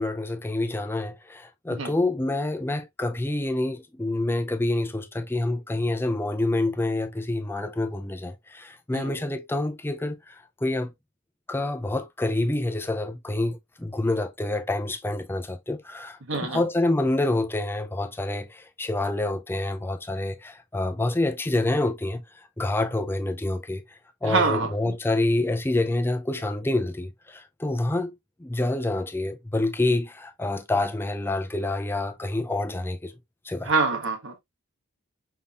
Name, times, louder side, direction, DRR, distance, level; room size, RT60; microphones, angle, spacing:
voice 1, 0.0-10.4 10.6-10.9 11.5-22.2 22.6-23.8 24.2-33.1 33.4-33.7, left 2 dB, 10° left, 0.5 m, -27 dB
voice 2, 16.3-16.6 24.2-25.0 33.6-34.4, right 4 dB, 60° right, 1.2 m, -26 dB
5.6 x 3.5 x 2.4 m
head